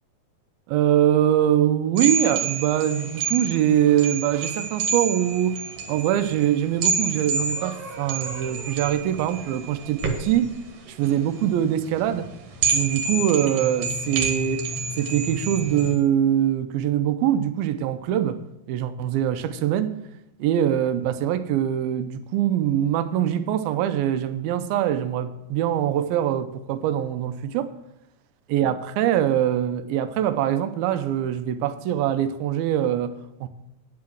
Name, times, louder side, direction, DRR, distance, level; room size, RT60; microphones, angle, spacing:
voice 1, 0.7-5.6 5.9-10.5 10.9-12.3 12.7-14.7 15.0-18.4 18.7-19.9 20.4-27.7 28.5-33.2 33.4-33.5, right 10 dB, 80° right, 2.3 m, -23 dB
sound 1, 2.0-15.9, right 5 dB, 60° right, 2.2 m, -29 dB
9.6 x 5.7 x 7.5 m
omnidirectional pair, 4.4 m